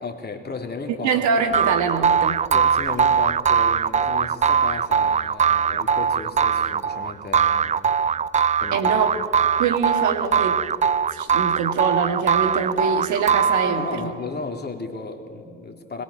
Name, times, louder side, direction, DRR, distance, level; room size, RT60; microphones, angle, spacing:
voice 1, 0.0-1.1 2.5-7.7 8.6-8.9 13.7-16.0, left 4 dB, 30° left, 4 dB, 3.2 m, -34 dB
voice 2, 1.0-2.4 8.7-9.2 9.6-10.6 11.1-14.1, right 5 dB, 55° right, 5 dB, 2.4 m, -24 dB
sound 1, 1.5-14.1, right 7 dB, 20° right, 0.5 m, -21 dB
26.5 x 22.0 x 7.2 m, 2.2 s
hypercardioid pair, 60°, 35 cm